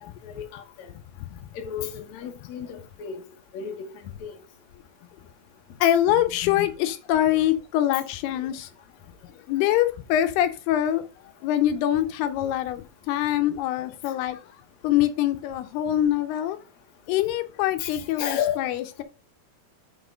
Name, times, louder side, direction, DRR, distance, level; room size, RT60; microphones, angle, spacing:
voice 1, 0.0-0.9 1.5-3.2 3.5-3.9 4.2-4.3 17.8-18.7, left 9 dB, 60° left, 2.0 m, -32 dB
voice 2, 5.8-8.7 9.5-11.1 11.4-14.4 14.8-16.6 17.1-19.0, left 12 dB, 85° left, 2.6 m, -24 dB
6.2 x 5.0 x 5.0 m
omnidirectional pair, 4.7 m